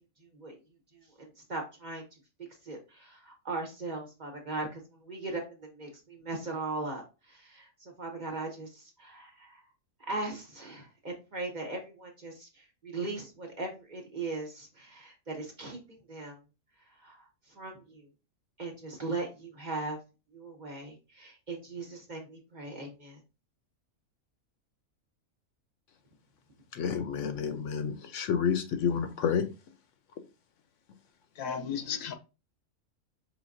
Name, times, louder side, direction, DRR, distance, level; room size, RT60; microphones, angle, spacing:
voice 1, 1.5-2.0 2.7-4.8 5.0-5.4 5.8-7.0 7.5-7.6 8.0-8.7 9.0-9.3 10.1-12.5 12.8-15.8 16.1-16.3 17.0-17.2 17.6-17.8 18.6-20.0 20.3-23.2, right 3 dB, 35° right, 1.0 m, -38 dB
voice 2, 26.7-29.4, left 7 dB, 70° left, 0.9 m, -29 dB
voice 3, 31.4-32.2, left 7 dB, 85° left, 1.1 m, -34 dB
5.0 x 3.3 x 2.5 m
omnidirectional pair, 1.4 m